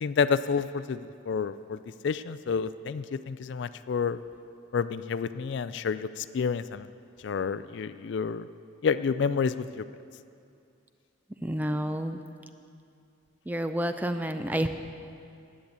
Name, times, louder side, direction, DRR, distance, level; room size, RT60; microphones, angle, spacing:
voice 1, 0.0-4.2 4.7-6.9 7.2-8.5 8.8-9.8, left 6 dB, 60° left, 13 dB, 0.3 m, -29 dB
voice 2, 11.4-12.2 13.5-14.7, right 1 dB, 10° right, 8 dB, 0.4 m, -29 dB
10.5 x 8.7 x 8.1 m, 2.5 s
head